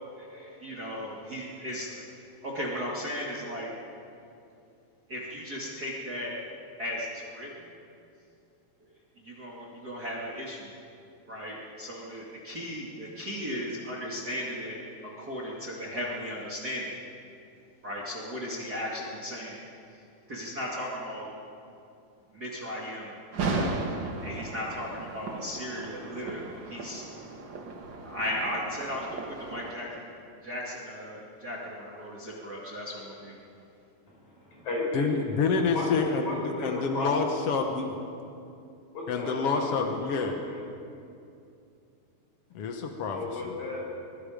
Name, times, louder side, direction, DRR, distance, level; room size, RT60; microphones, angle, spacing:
voice 1, 0.2-3.7 5.1-6.4 6.8-7.8 9.2-10.7 11.3-17.0 17.8-19.6 19.9-20.0 20.3-21.3 22.3-23.9 24.2-27.0 27.7-30.1 30.4-33.4, equal, 30° right, -5 dB, 2.3 m, -36 dB
sound 1, 23.3-29.7, right 3 dB, 55° right, 1.3 m, -36 dB
voice 2, 34.1-35.1 35.7-37.1 38.9-40.6 43.1-43.9, left 2 dB, 45° left, -3 dB, 6.8 m, -35 dB
voice 3, 34.9-38.0 39.1-40.4 42.5-43.5, left 4 dB, 70° left, 3 dB, 1.4 m, -28 dB
24.0 x 22.0 x 5.2 m, 2.6 s
omnidirectional pair, 4.5 m